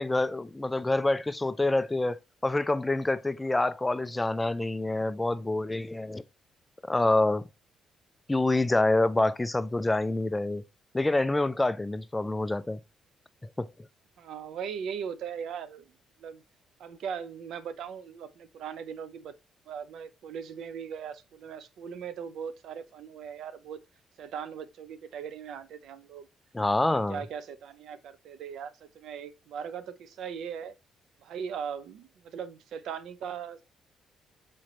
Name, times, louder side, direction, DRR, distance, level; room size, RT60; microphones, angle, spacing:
voice 1, 0.0-2.2 2.4-6.2 6.9-7.4 8.3-10.6 10.9-12.8 13.6-13.7 26.5-27.2, left 2 dB, 15° left, 0.3 m, -26 dB
voice 2, 14.2-15.9 16.2-16.4 16.8-19.3 19.7-23.8 24.2-26.3 26.8-30.7 31.2-33.6, right 7 dB, 75° right, 0.5 m, -39 dB
4.3 x 3.1 x 3.7 m
cardioid pair, 90°, 0 cm